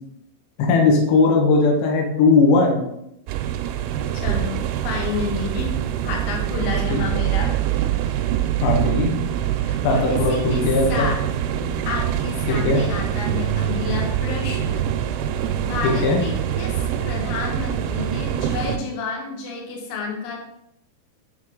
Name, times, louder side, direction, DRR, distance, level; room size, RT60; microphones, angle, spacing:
voice 1, 0.6-2.8 6.9-7.0 8.6-9.2 9.8-11.1 12.5-12.8 15.8-16.2, left 3 dB, 70° left, 0 dB, 3.1 m, -18 dB
sound 1, 3.3-18.8, right 10 dB, 85° right, 2.9 m, -24 dB
voice 2, 4.1-5.8 6.0-7.6 9.6-11.2 11.9-14.8 15.6-20.4, left 5 dB, 90° left, 0 dB, 3.7 m, -30 dB
7.8 x 4.1 x 3.8 m, 0.80 s
omnidirectional pair, 5.5 m